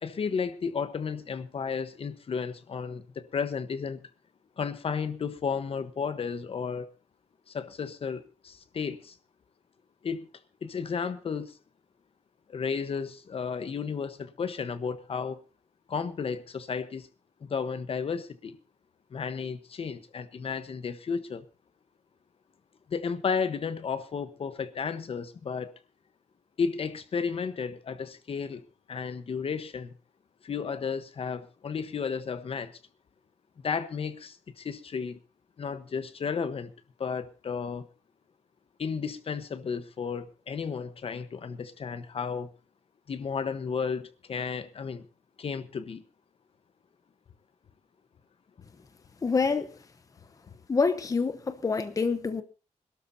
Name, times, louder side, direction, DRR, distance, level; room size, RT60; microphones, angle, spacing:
voice 1, 0.0-4.0 4.6-6.9 7.5-9.1 10.0-10.3 10.6-11.6 12.5-15.4 15.9-17.1 17.4-18.6 19.1-21.4 22.9-25.7 26.6-28.6 28.9-29.9 30.4-32.7 33.6-35.2 35.6-36.7 37.0-37.9 38.8-42.5 43.1-45.1 45.4-46.0, left 6 dB, 50° left, 1.1 m, -33 dB
voice 2, 49.2-49.7 50.7-52.4, left 4 dB, 30° left, 0.9 m, -26 dB
25.5 x 12.5 x 2.7 m
wide cardioid pair, 165°, 12 cm